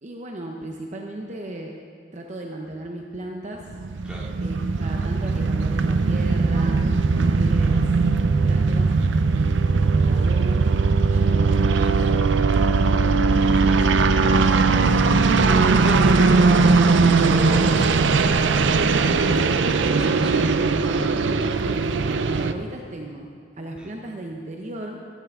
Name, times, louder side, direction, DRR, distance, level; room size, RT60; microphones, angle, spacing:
voice 1, 0.0-1.7 2.1-3.6 4.4-7.8 8.4-9.0 9.3-13.3 14.0-14.8 21.6-23.3 23.6-25.0, right 1 dB, 40° right, 1 dB, 0.8 m, -36 dB
sound 1, 3.7-22.5, right 4 dB, 90° right, 0.6 m, -19 dB
voice 2, 15.7-18.9 19.2-20.4 23.8-23.9, equal, 5° right, -5 dB, 2.5 m, -37 dB
15.0 x 14.0 x 3.7 m, 2.4 s
head